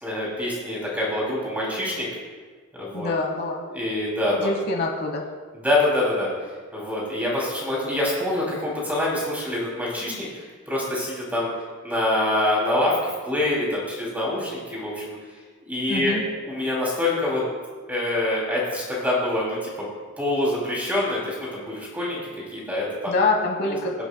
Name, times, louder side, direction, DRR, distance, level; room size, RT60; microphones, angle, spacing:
voice 1, 0.0-2.1 2.7-3.1 3.7-4.5 5.6-6.3 6.7-11.5 11.8-13.0 13.3-15.1 15.7-16.2 16.5-17.4 17.9-19.9 20.2-22.2 22.5-23.1 23.7-23.8, left 1 dB, 10° right, -5 dB, 2.7 m, -25 dB
voice 2, 2.9-3.6 4.4-5.2 15.9-16.2 23.1-23.9, left 3 dB, 50° left, 1 dB, 1.2 m, -25 dB
21.0 x 7.9 x 2.2 m, 1.5 s
head